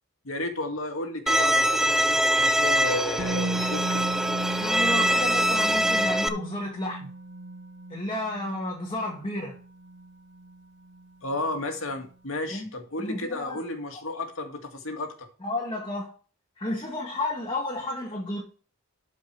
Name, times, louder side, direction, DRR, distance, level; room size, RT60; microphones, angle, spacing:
voice 1, 0.2-4.1 11.2-15.3, left 2 dB, 80° left, 2.1 m, -33 dB
Bowed string instrument, 1.3-6.3, equal, ahead, 0.6 m, -23 dB
Musical instrument, 3.2-11.1 11.4-11.5, right 2 dB, 60° right, 1.4 m, -36 dB
voice 2, 4.6-7.1 7.9-9.6 12.5-12.7 13.0-13.6 15.4-16.1 16.6-18.4, left 1 dB, 25° left, 1.8 m, -32 dB
12.5 x 5.3 x 4.6 m
head